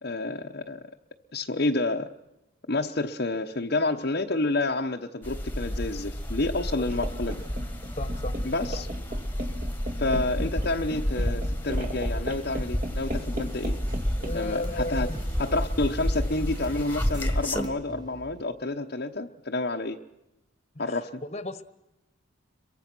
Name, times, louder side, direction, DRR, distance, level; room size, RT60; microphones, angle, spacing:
voice 1, 0.0-0.8 1.3-2.1 2.7-7.4 8.4-8.9 10.0-13.7 14.3-15.1 15.4-20.0 20.8-21.2, left 2 dB, 50° left, 2 dB, 0.9 m, -29 dB
sound 1, 5.2-17.6, equal, 10° left, 1.5 m, -30 dB
sound 2, 6.9-17.3, right 1 dB, 40° right, 2.2 m, -39 dB
voice 2, 8.0-8.3 14.2-15.2 20.7-21.6, left 1 dB, 30° left, 12 dB, 1.2 m, -35 dB
sound 3, 13.3-18.4, right 1 dB, 20° right, 0.8 m, -44 dB
28.0 x 23.0 x 6.1 m, 0.95 s
head